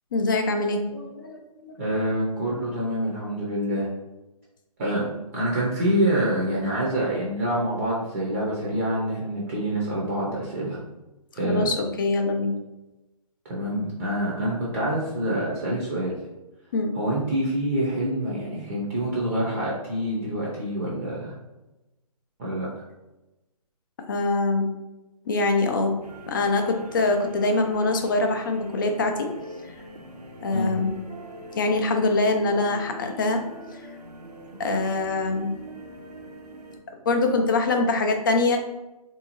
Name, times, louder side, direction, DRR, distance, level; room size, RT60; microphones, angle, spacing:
voice 1, 0.1-1.8 11.4-12.5 16.7-17.0 24.1-24.7 25.3-25.9 26.3-29.3 29.7-29.8 30.4-30.9 31.5-33.4 33.7-33.8 34.6-35.5 37.1-38.6, left 3 dB, 35° left, 4 dB, 0.4 m, -24 dB
voice 2, 1.8-3.9 4.8-5.0 5.3-10.8 11.3-11.7 13.4-16.1 16.9-21.3 22.4-22.7 30.5-30.7, right 1 dB, 20° right, -4 dB, 0.6 m, -26 dB
sound 1, 26.0-36.8, right 1 dB, 85° right, 0.6 m, -43 dB
3.6 x 2.7 x 2.9 m, 1.0 s
figure-of-eight pair, 140°, 20 cm